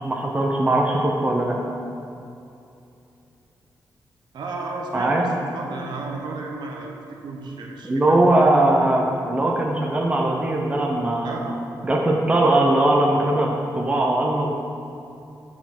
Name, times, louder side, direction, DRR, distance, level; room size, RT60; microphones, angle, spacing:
voice 1, 0.0-1.6 4.9-5.3 7.9-11.3 11.8-14.5, right 1 dB, 20° right, -1 dB, 0.6 m, -20 dB
voice 2, 4.3-8.2 11.2-11.6, right 3 dB, 85° right, 1 dB, 0.9 m, -33 dB
7.9 x 4.7 x 5.9 m, 2.7 s
wide cardioid pair, 135°, 7 cm